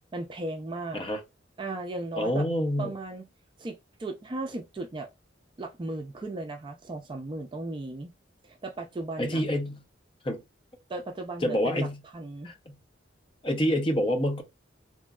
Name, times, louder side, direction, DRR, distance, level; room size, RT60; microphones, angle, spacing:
voice 1, 0.1-1.0 1.6-2.4 2.8-3.2 3.6-5.1 5.6-8.1 8.4-9.4 10.9-11.9 12.1-12.5, right 2 dB, 25° right, 0.4 m, -36 dB
voice 2, 2.2-2.9 9.2-9.8 10.2-10.4 11.4-12.0 12.4-12.7 13.4-14.4, equal, 30° left, 0.7 m, -27 dB
2.9 x 2.6 x 2.3 m
head